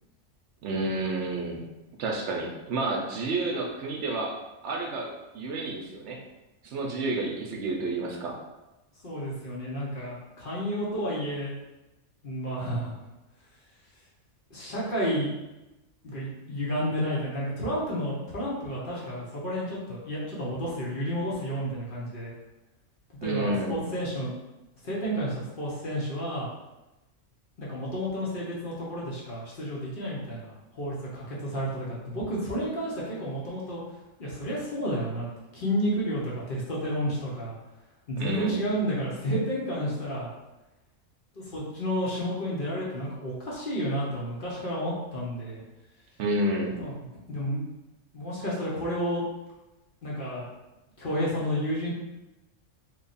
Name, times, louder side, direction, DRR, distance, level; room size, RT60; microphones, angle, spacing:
voice 1, 0.6-1.6 2.0-4.3 4.6-6.2 6.6-8.4 23.2-23.8 38.2-38.6 46.2-46.8, right 2 dB, 70° right, 0 dB, 0.8 m, -30 dB
voice 2, 9.0-11.5 12.2-12.9 14.5-15.3 16.0-22.3 23.2-24.3 24.8-26.5 27.6-33.8 34.2-35.3 35.5-37.6 38.1-40.3 41.4-45.6 46.8-47.6 48.1-49.2 50.0-50.4 51.0-51.9, equal, 45° left, -6 dB, 0.9 m, -31 dB
3.0 x 2.3 x 4.0 m, 1.0 s
omnidirectional pair, 1.3 m